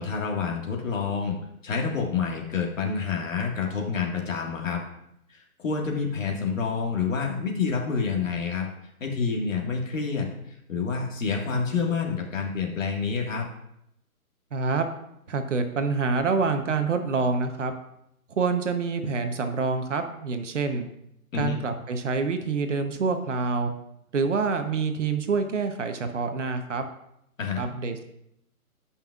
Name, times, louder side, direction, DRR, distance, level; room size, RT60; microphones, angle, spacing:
voice 1, 0.0-1.4 1.6-4.8 5.3-8.7 9.0-10.3 10.7-13.5 21.3-21.6 27.4-27.6, left 5 dB, 60° left, 0 dB, 1.8 m, -28 dB
voice 2, 14.5-14.9 15.3-17.7 18.4-20.9 21.3-23.7 24.1-26.8 27.6-28.0, right 4 dB, 55° right, 7 dB, 0.9 m, -26 dB
16.0 x 5.6 x 2.4 m, 0.78 s
hypercardioid pair, 160°, 44 cm